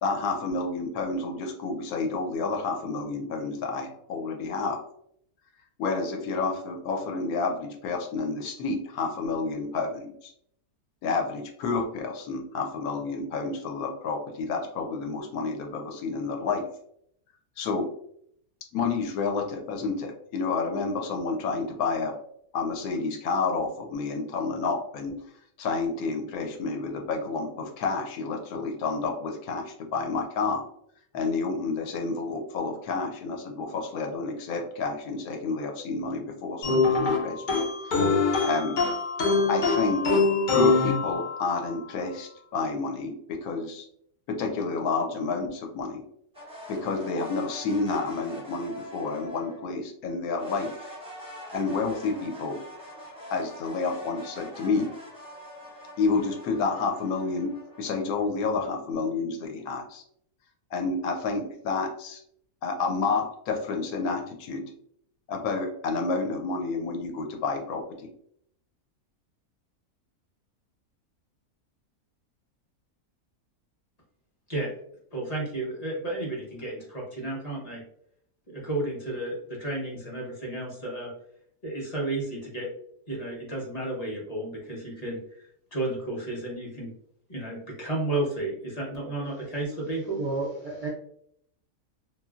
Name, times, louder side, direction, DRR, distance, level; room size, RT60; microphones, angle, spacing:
voice 1, 0.0-4.8 5.8-10.3 11.0-16.6 17.6-17.9 18.7-22.1 22.5-25.1 25.6-30.6 31.1-37.6 38.5-38.8 39.5-40.2 40.5-43.9 44.3-46.0 46.7-50.9 51.5-52.6 53.3-54.9 56.0-57.5 57.8-60.0 60.7-62.2 62.6-64.6 65.3-68.1, left 4 dB, 80° left, 3 dB, 1.1 m, -30 dB
sound 1, 36.6-41.7, left 3 dB, 55° left, 0.5 m, -24 dB
sound 2, 46.3-49.7 50.4-58.5, equal, 5° right, 0.5 m, -44 dB
voice 2, 75.1-77.8 78.5-81.1 81.6-82.7 83.1-86.9 87.3-90.2, right 2 dB, 30° left, -3 dB, 0.8 m, -32 dB
voice 3, 90.1-90.9, right 3 dB, 75° right, -4 dB, 0.4 m, -31 dB
3.1 x 2.5 x 2.4 m, 0.69 s
omnidirectional pair, 1.6 m